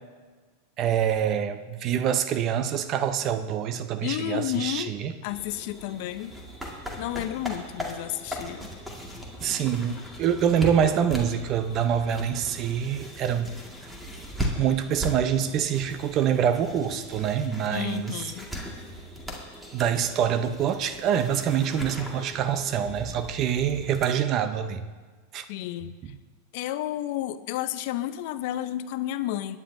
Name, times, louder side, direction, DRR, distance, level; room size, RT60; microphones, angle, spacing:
voice 1, 0.8-5.1 9.4-13.6 14.6-18.2 19.7-24.8 25.3-25.4, right 8 dB, 40° right, 10 dB, 0.7 m, -25 dB
voice 2, 4.0-4.9 5.2-6.4 7.0-8.7 17.7-18.5 25.5-26.1 26.5-29.6, left 13 dB, 60° left, 12 dB, 0.6 m, -31 dB
sound 1, 5.3-24.1, equal, ahead, 1.9 m, -38 dB
20.5 x 9.7 x 2.7 m, 1.4 s
hypercardioid pair, 120°, 0 cm